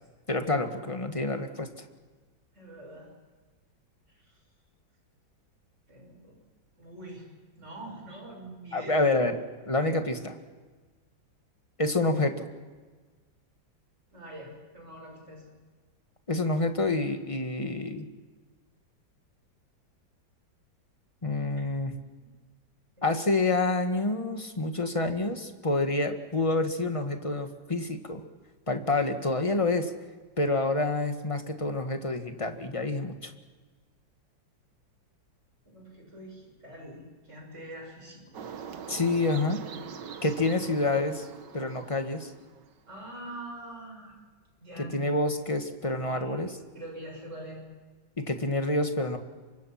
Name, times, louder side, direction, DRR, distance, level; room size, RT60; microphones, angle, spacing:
voice 1, 0.3-1.7 8.7-9.4 9.6-10.4 11.8-12.5 16.3-18.1 21.2-21.9 23.0-28.2 28.7-29.9 30.4-33.3 38.9-39.6 40.2-41.3 41.5-42.3 44.8-46.5 48.2-49.2, left 2 dB, 20° left, 6 dB, 1.5 m, -28 dB
voice 2, 2.5-3.1 4.1-4.4 5.9-6.3 6.8-7.3 7.6-9.0 14.1-15.4 23.0-23.2 35.7-38.2 42.9-44.2 44.6-45.0 46.0-47.6, right 1 dB, 35° right, 0 dB, 7.5 m, -44 dB
sound 1, 38.3-42.7, right 7 dB, 65° right, 1.9 m, -43 dB
28.0 x 24.5 x 5.9 m, 1.4 s
omnidirectional pair, 2.1 m